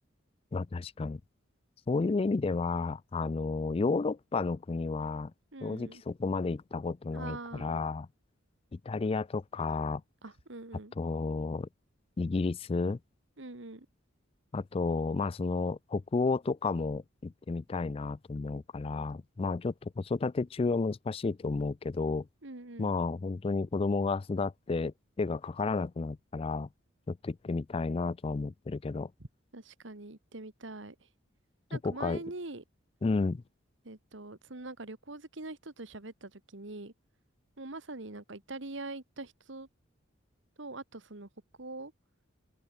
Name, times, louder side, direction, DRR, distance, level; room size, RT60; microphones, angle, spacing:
voice 1, 0.5-1.2 1.9-5.3 5.6-8.1 8.7-10.0 11.0-11.7 12.2-13.0 14.5-22.3 22.8-26.7 27.1-29.1 31.7-32.2 33.0-33.4, left 3 dB, 30° left, 0.3 m, -32 dB
voice 2, 5.5-6.0 7.1-7.8 10.2-10.9 13.4-13.9 22.4-22.9 29.5-31.0 31.7-32.6 33.8-36.9 37.6-39.7 40.6-41.3 41.6-41.9, right 2 dB, 65° right, 1.8 m, -43 dB
open air
head